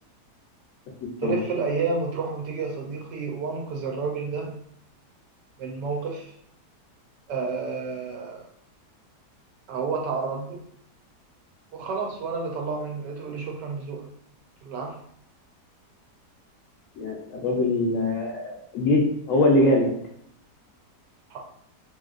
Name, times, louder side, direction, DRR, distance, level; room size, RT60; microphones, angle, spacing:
voice 1, 1.2-4.5 5.6-6.3 7.3-8.5 9.7-10.6 11.7-14.0 14.6-14.9 21.3-21.4, right 4 dB, 80° right, 1 dB, 1.3 m, -30 dB
voice 2, 17.0-19.9, left 1 dB, 70° left, 0 dB, 0.8 m, -22 dB
3.0 x 2.7 x 2.4 m, 0.66 s
omnidirectional pair, 1.8 m